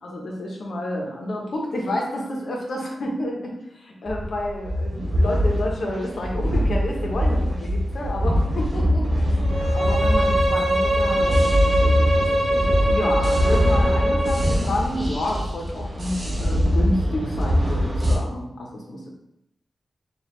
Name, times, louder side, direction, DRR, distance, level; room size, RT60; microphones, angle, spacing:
voice 1, 0.0-19.0, left 1 dB, 60° left, -1 dB, 0.9 m, -30 dB
sound 1, 4.1-18.2, equal, 30° right, 0.8 m, -22 dB
Bowed string instrument, 9.4-14.6, right 1 dB, 75° right, 0.7 m, -23 dB
4.9 x 2.5 x 3.1 m, 0.79 s
wide cardioid pair, 170°, 0 cm